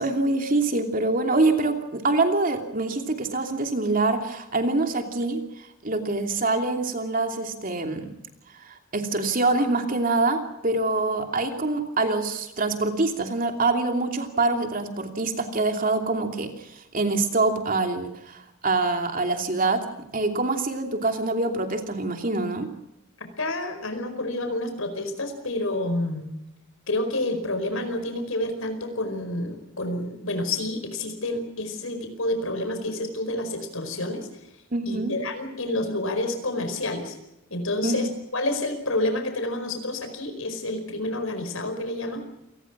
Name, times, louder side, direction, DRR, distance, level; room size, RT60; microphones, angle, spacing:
voice 1, 0.0-8.1 8.5-19.8 20.1-22.7 34.7-35.1 37.8-38.2, right 2 dB, 40° right, 5 dB, 2.9 m, -25 dB
voice 2, 23.4-26.3 26.9-34.3 34.9-37.2 37.5-42.2, left 2 dB, 80° left, 7 dB, 4.8 m, -29 dB
28.5 x 19.0 x 6.1 m, 0.90 s
head